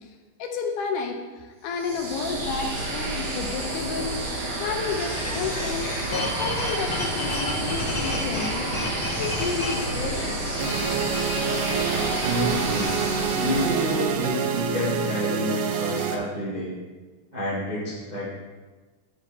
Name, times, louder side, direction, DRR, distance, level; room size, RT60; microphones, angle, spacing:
voice 1, 0.4-4.2 4.6-5.9 6.3-8.7 9.2-10.4, left 5 dB, 80° left, 3 dB, 2.4 m, -31 dB
sound 1, 1.7-14.4, right 2 dB, 60° right, 1.1 m, -31 dB
sound 2, 5.1-14.0, left 2 dB, 50° left, 2.2 m, -32 dB
sound 3, 10.6-16.2, right 6 dB, 80° right, 2.2 m, -27 dB
voice 2, 11.9-12.9 13.4-16.7 17.3-18.3, equal, 25° right, -7 dB, 1.0 m, -29 dB
10.0 x 5.0 x 4.2 m, 1.3 s
omnidirectional pair, 3.6 m